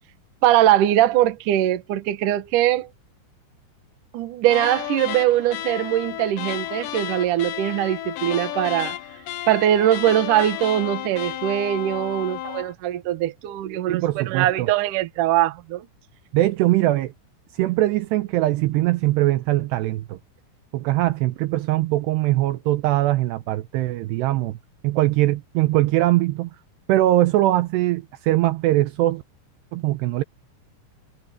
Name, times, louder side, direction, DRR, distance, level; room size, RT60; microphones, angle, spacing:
voice 1, 0.4-2.9 4.1-9.0 9.5-15.9, right 12 dB, 70° right, 2.0 m, -21 dB
sound 1, 4.5-12.7, left 14 dB, 70° left, 3.0 m, -32 dB
voice 2, 13.9-14.7 16.3-17.1 17.6-20.2 20.7-24.6 24.8-26.5 26.9-29.2 29.7-30.2, right 16 dB, 90° right, 2.4 m, -21 dB
omnidirectional pair, 5.7 m